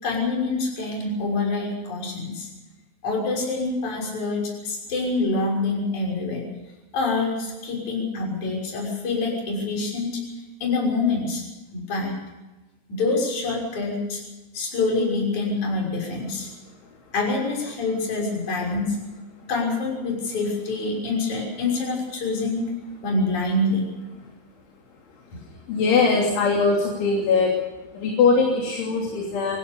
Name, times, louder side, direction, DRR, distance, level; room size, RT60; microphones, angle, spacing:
voice 1, 0.0-2.5 3.0-6.5 6.9-10.2 10.6-11.4 11.7-12.1 12.9-14.2 14.5-16.5 17.1-19.0 19.5-22.6 23.0-23.9, left 3 dB, 40° left, -1 dB, 7.3 m, -26 dB
voice 2, 25.7-27.5 28.0-29.6, left 4 dB, 85° left, 0 dB, 5.4 m, -21 dB
24.5 x 16.0 x 6.9 m, 1.1 s
omnidirectional pair, 5.2 m